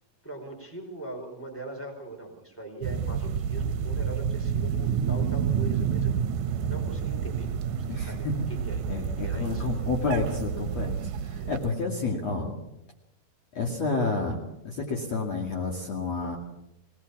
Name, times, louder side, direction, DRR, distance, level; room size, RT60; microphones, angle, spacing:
voice 1, 0.2-6.1 6.7-9.7 11.3-11.5, right 2 dB, 5° left, 2 dB, 4.8 m, -41 dB
sound 1, 2.8-11.7, right 7 dB, 70° right, 2.2 m, -29 dB
voice 2, 7.9-8.5 8.9-12.6 13.5-14.4 14.6-16.4, left 3 dB, 50° left, 0 dB, 3.3 m, -30 dB
24.0 x 18.5 x 7.3 m, 0.86 s
omnidirectional pair, 4.0 m